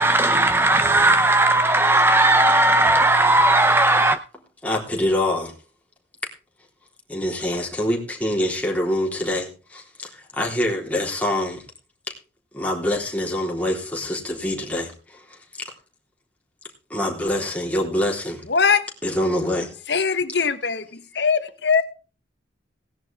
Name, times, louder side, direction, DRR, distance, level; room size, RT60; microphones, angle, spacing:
voice 1, 0.0-4.1, right 2 dB, 10° right, 0.5 m, -17 dB
voice 2, 4.6-5.5 7.1-11.6 12.5-15.4 16.9-18.5 19.0-19.7, left 1 dB, 10° left, 3.7 m, -25 dB
voice 3, 18.5-18.9 19.9-20.9 21.1-21.8, left 5 dB, 70° left, 1.1 m, -20 dB
18.0 x 10.5 x 3.5 m
head